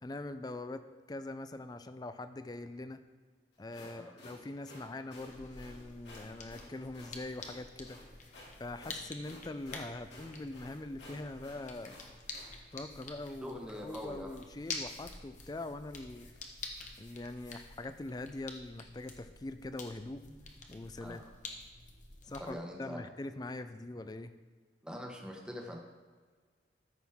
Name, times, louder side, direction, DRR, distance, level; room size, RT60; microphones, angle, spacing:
voice 1, 0.0-3.0 3.6-8.0 8.6-12.0 12.7-13.6 13.8-16.3 17.0-20.2 20.7-21.2 22.2-24.3, left 2 dB, 20° left, 11 dB, 0.4 m, -43 dB
sound 1, 3.5-12.5, left 1 dB, 80° left, 2.6 m, -54 dB
voice 2, 3.8-4.1 13.4-14.4 21.0-21.3 22.2-23.0 24.8-25.8, equal, 5° right, 1 dB, 1.0 m, -44 dB
sound 2, 5.2-22.5, left 3 dB, 45° left, 1.0 m, -48 dB
13.5 x 6.0 x 3.6 m, 1.5 s
head